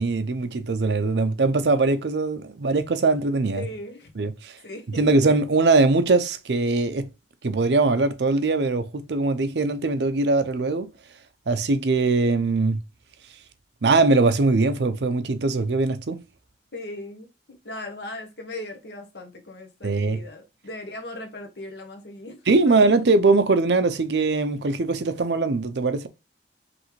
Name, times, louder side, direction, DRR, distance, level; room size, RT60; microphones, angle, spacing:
voice 1, 0.0-3.7 4.2-4.5 4.9-7.1 7.4-10.9 11.5-12.8 13.8-16.2 19.8-20.2 22.5-26.1, right 3 dB, 70° right, 0.6 m, -21 dB
voice 2, 3.5-4.1 4.6-5.0 16.7-17.3 17.6-22.4 22.6-22.7, left 2 dB, 65° left, 1.3 m, -38 dB
5.2 x 3.3 x 3.1 m
head